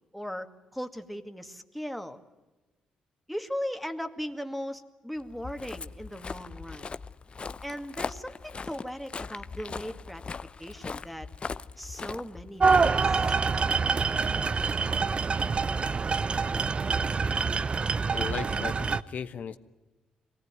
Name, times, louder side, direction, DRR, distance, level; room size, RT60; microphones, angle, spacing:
voice 1, 0.1-2.2 3.3-6.9 7.6-10.2 10.6-11.3 11.8-13.2, equal, ahead, 6 dB, 2.2 m, -38 dB
Walk footsteps, 5.3-13.5, left 4 dB, 40° left, 0.8 m, -40 dB
sound 1, 12.6-19.0, right 4 dB, 40° right, 0.8 m, -26 dB
voice 2, 17.9-19.6, left 7 dB, 60° left, 10 dB, 1.0 m, -37 dB
23.0 x 18.0 x 9.6 m, 1.1 s
hypercardioid pair, 50°, 3 cm